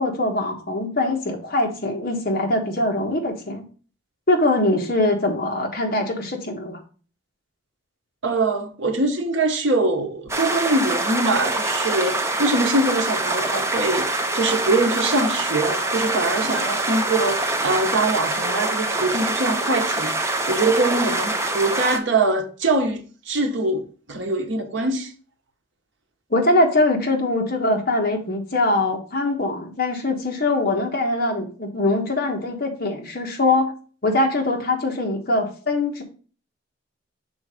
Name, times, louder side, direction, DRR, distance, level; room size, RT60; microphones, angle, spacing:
voice 1, 0.0-3.6 4.3-6.8 26.3-33.7 34.0-36.0, left 2 dB, 45° left, 1.3 m, -22 dB
voice 2, 8.2-25.1, right 2 dB, 65° right, 0.9 m, -23 dB
sound 1, 10.3-22.0, right 2 dB, 15° right, 0.6 m, -24 dB
6.2 x 3.9 x 4.8 m
head